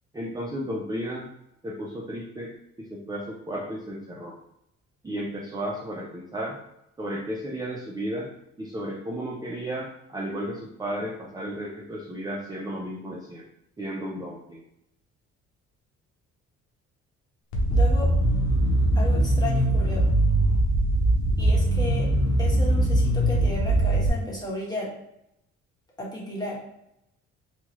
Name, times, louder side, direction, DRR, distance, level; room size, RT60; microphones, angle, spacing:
voice 1, 0.1-1.3 1.6-2.5 2.8-4.3 5.0-6.6 7.0-8.3 8.6-13.4 13.8-14.6, equal, 15° right, -3 dB, 0.5 m, -33 dB
sound 1, 17.5-24.1, right 1 dB, 80° left, 0.7 m, -21 dB
voice 2, 17.7-18.1 18.9-20.0 21.4-22.1 22.4-24.9 26.0-26.6, left 1 dB, 15° left, -4 dB, 1.1 m, -33 dB
2.9 x 2.3 x 3.0 m, 0.80 s
cardioid pair, 80°, 30 cm